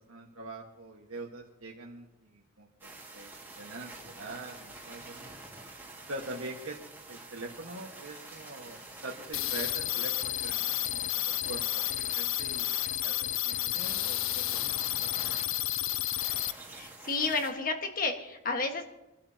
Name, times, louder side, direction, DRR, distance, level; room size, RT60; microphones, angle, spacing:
voice 1, 0.1-5.4 6.1-6.8 7.1-12.7 13.0-15.2, right 2 dB, 80° right, -2 dB, 1.5 m, -44 dB
sound 1, 2.8-17.5, right 2 dB, 10° right, 2.0 m, -48 dB
sound 2, 9.3-16.5, left 14 dB, 70° left, 0.5 m, -31 dB
voice 2, 16.7-18.8, left 3 dB, 40° left, 4 dB, 1.6 m, -31 dB
24.5 x 12.0 x 2.9 m, 0.95 s
head